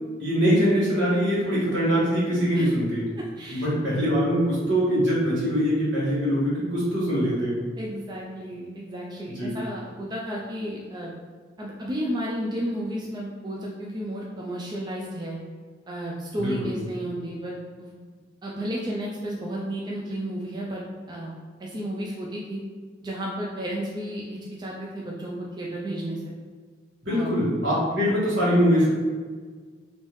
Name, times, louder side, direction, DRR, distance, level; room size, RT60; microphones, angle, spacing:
voice 1, 0.2-3.0 3.5-7.6 9.4-9.5 16.4-16.7 27.0-28.9, equal, 70° right, -8 dB, 1.5 m, -23 dB
voice 2, 3.4-3.7 7.8-11.1 11.6-15.4 15.9-17.9 18.4-20.8 21.1-21.3 21.6-22.6 23.0-26.3 27.1-27.3, equal, 25° right, -3 dB, 0.3 m, -32 dB
3.4 x 2.6 x 3.0 m, 1.5 s
head